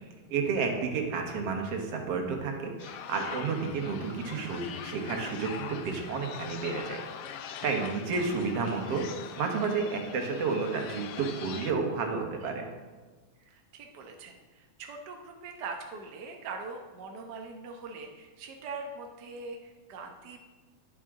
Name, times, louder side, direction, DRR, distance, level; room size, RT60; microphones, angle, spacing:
voice 1, 0.3-7.0 7.6-9.1 9.4-12.7, right 4 dB, 60° right, 2 dB, 2.1 m, -31 dB
sound 1, 2.8-11.7, left 8 dB, 80° left, 1.3 m, -42 dB
voice 2, 13.5-20.4, right 4 dB, 80° right, 3 dB, 0.9 m, -42 dB
11.0 x 10.0 x 3.7 m, 1.4 s
omnidirectional pair, 3.5 m